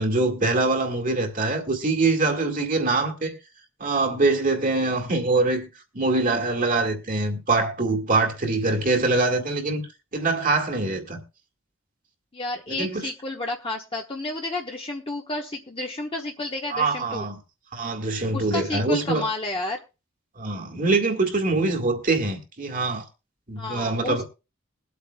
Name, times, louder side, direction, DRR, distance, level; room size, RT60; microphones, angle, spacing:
voice 1, 0.0-3.3 3.8-5.7 5.9-9.8 10.1-11.2 12.7-13.1 16.7-17.4 17.7-19.2 20.4-23.0 23.5-24.2, right 3 dB, 45° right, 1.9 m, -24 dB
voice 2, 12.3-17.3 18.3-19.8 23.6-24.2, left 2 dB, 25° left, 1.1 m, -31 dB
22.0 x 8.4 x 2.2 m
head